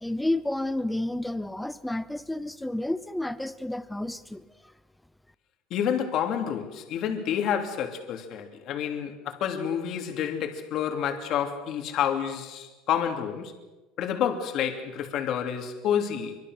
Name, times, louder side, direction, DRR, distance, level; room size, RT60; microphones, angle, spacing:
voice 1, 0.0-4.5, left 1 dB, 5° left, 0.8 m, -30 dB
voice 2, 5.7-13.5 14.0-16.4, left 8 dB, 45° left, 2.9 m, -29 dB
26.0 x 24.5 x 6.5 m
cardioid pair, 165°, 0 cm